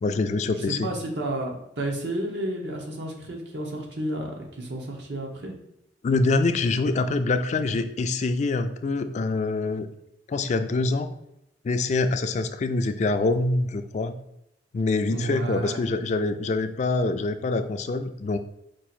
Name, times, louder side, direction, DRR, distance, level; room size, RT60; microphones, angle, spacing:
voice 1, 0.0-0.9 6.0-9.9 10.3-11.1 11.6-14.1 14.7-18.4, left 3 dB, 40° left, 9 dB, 0.3 m, -25 dB
voice 2, 0.5-5.5 15.1-15.7, right 1 dB, 70° right, 0 dB, 1.0 m, -31 dB
4.6 x 2.5 x 4.3 m, 0.83 s
head